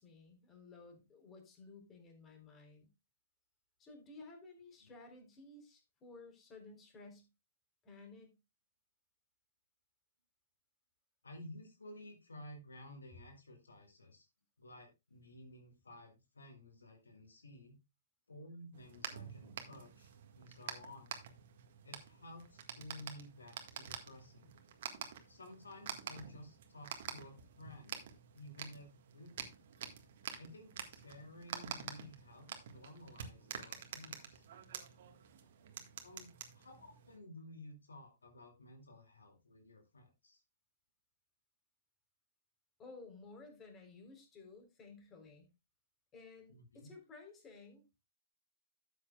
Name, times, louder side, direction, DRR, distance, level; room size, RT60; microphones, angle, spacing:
voice 1, 0.0-2.9 3.8-7.3 7.8-8.3 42.8-45.5 46.1-47.8, left 3 dB, 20° left, 3 dB, 3.9 m, -55 dB
voice 2, 11.2-14.3 14.6-17.8 18.3-21.1 21.8-24.5 25.3-28.1 28.3-29.6 30.4-34.5 36.0-40.4 46.5-46.9, left 1 dB, 80° left, 3 dB, 2.6 m, -54 dB
sound 1, 18.7-37.2, right 8 dB, 50° right, 1.7 m, -48 dB
13.0 x 8.3 x 2.3 m, 0.25 s
figure-of-eight pair, 120°, 0 cm